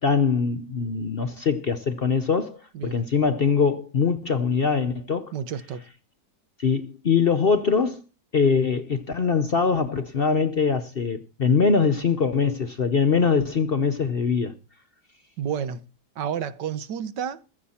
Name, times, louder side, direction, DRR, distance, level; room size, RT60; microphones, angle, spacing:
voice 1, 0.0-5.3 6.6-8.0 8.3-14.5, left 5 dB, 45° left, 0.8 m, -22 dB
voice 2, 5.3-5.8 15.4-15.8 16.1-17.4, right 8 dB, 85° right, 1.7 m, -30 dB
15.5 x 13.0 x 4.3 m
omnidirectional pair, 1.8 m